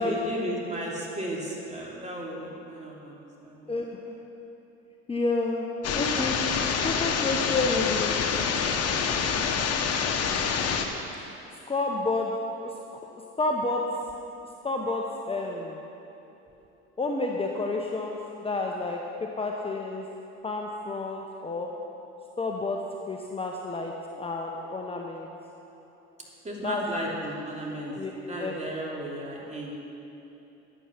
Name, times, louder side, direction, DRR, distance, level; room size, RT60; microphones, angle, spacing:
voice 1, 0.0-3.2 3.4-3.7 26.4-27.9 28.3-29.7, right 1 dB, 20° right, -3 dB, 3.1 m, -34 dB
voice 2, 3.7-4.0 5.1-6.4 6.8-8.3 11.7-12.3 12.6-13.0 13.4-13.8 14.6-15.8 17.0-19.0 19.4-20.0 20.4-21.7 22.4-22.8 23.1-25.3 26.6-26.8 28.0-28.1 28.4-28.5, left 3 dB, 15° left, 0 dB, 1.0 m, -30 dB
sound 1, 5.8-10.9, left 6 dB, 45° left, 1.2 m, -26 dB
10.5 x 9.1 x 5.9 m, 3.0 s
hypercardioid pair, 75°, 33 cm